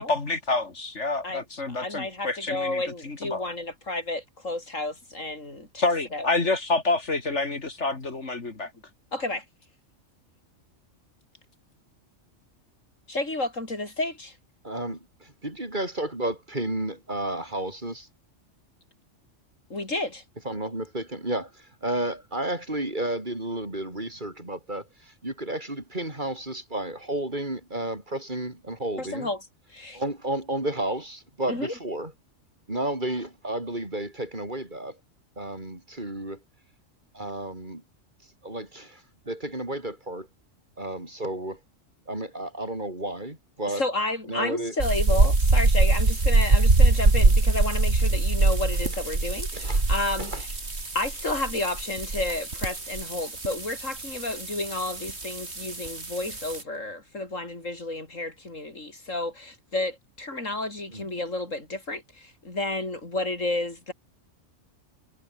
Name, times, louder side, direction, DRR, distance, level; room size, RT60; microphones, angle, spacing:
voice 1, 0.0-3.4 5.8-8.7, left 3 dB, 65° left, 3.1 m, -28 dB
voice 2, 1.2-6.3 9.1-9.4 13.1-14.3 19.7-20.2 29.0-29.4 29.7-30.0 31.5-31.7 43.7-50.5 50.9-63.9, left 2 dB, 80° left, 6.0 m, -31 dB
voice 3, 14.6-18.1 20.4-29.3 29.9-32.1 32.7-35.0 35.4-36.4 37.1-37.8 38.4-40.3 40.8-41.6 42.1-43.8 44.3-44.7 49.5-49.8 50.2-50.4 60.9-61.1, right 1 dB, 40° right, 4.9 m, -32 dB
sound 1, 44.8-56.6, right 3 dB, 60° right, 3.7 m, -23 dB
omnidirectional pair, 1.3 m